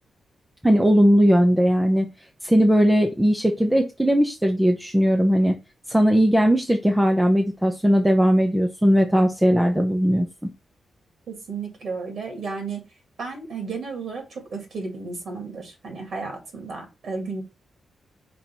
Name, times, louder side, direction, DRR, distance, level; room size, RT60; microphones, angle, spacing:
voice 1, 0.6-2.1 2.4-5.5 5.9-10.3, equal, 5° right, 3 dB, 0.6 m, -18 dB
voice 2, 11.3-12.9 13.2-17.4, right 4 dB, 50° right, 4 dB, 2.1 m, -33 dB
5.3 x 4.5 x 4.4 m, 0.27 s
wide cardioid pair, 170°, 0 cm